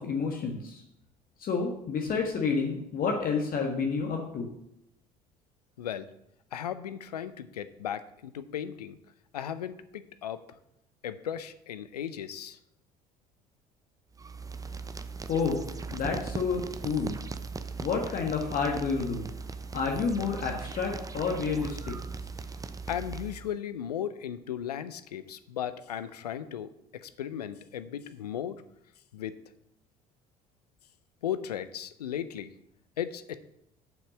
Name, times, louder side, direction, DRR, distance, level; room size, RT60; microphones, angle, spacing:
voice 1, 0.0-0.8 1.4-4.5 15.3-15.6 15.9-17.2 17.8-19.3 19.7-21.9, left 5 dB, 45° left, 1 dB, 1.6 m, -29 dB
voice 2, 5.8-6.1 6.5-9.0 9.3-10.6 11.0-12.6 22.9-26.7 27.0-28.6 29.1-29.3 31.2-32.5 33.0-33.4, left 9 dB, 85° left, 13 dB, 0.6 m, -36 dB
sound 1, 14.1-23.6, right 4 dB, 15° right, 0.7 m, -39 dB
7.3 x 5.9 x 6.7 m, 0.79 s
figure-of-eight pair, 60°, 20 cm